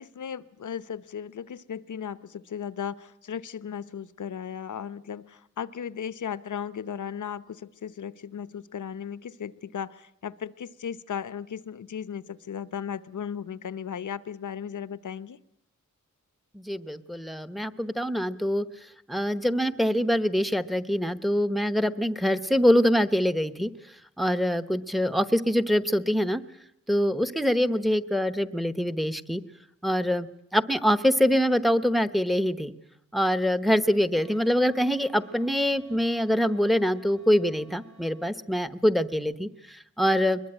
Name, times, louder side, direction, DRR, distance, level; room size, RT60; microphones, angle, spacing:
voice 1, 0.0-15.4, left 8 dB, 75° left, 17 dB, 0.9 m, -36 dB
voice 2, 16.5-18.6 19.1-23.7 24.2-26.4 26.9-29.4 29.8-32.7 33.1-40.4, equal, ahead, 14 dB, 0.9 m, -24 dB
Wind instrument woodwind instrument, 34.1-38.3, right 3 dB, 65° right, 2.9 m, -53 dB
22.5 x 21.5 x 9.0 m, 0.79 s
wide cardioid pair, 110°, 30 cm